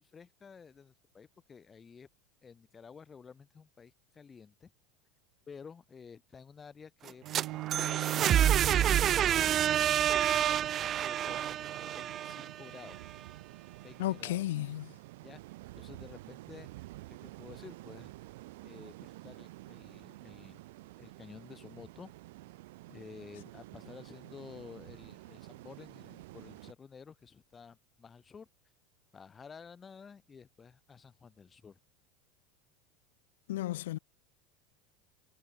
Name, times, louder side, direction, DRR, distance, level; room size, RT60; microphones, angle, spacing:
voice 1, 0.0-2.1 2.4-4.7 5.5-13.0 13.8-14.5 15.2-15.4 15.8-16.9 17.2-18.1 18.6-20.6 21.0-22.1 22.9-28.5 29.1-31.8, left 6 dB, 25° left, 1.9 m, -52 dB
sound 1, 7.1-12.9, right 10 dB, 40° right, 0.4 m, -28 dB
Bowed string instrument, 7.2-12.4, right 19 dB, 55° right, 2.1 m, -40 dB
sound 2, 7.3-26.7, right 19 dB, 75° right, 3.1 m, -50 dB
voice 2, 14.0-14.9 33.5-34.0, left 15 dB, 80° left, 0.5 m, -33 dB
hypercardioid pair, 100°, 0 cm